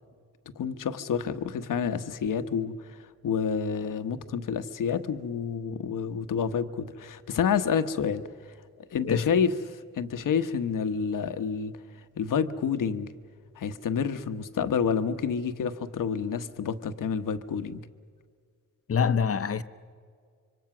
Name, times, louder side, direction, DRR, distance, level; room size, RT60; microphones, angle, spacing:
voice 1, 0.6-8.2 8.9-11.7 12.2-13.1 13.6-17.9, left 6 dB, 80° left, 1.2 m, -29 dB
voice 2, 18.9-19.6, left 6 dB, 45° left, 0.9 m, -25 dB
26.0 x 24.5 x 6.1 m
cardioid pair, 90°, 32 cm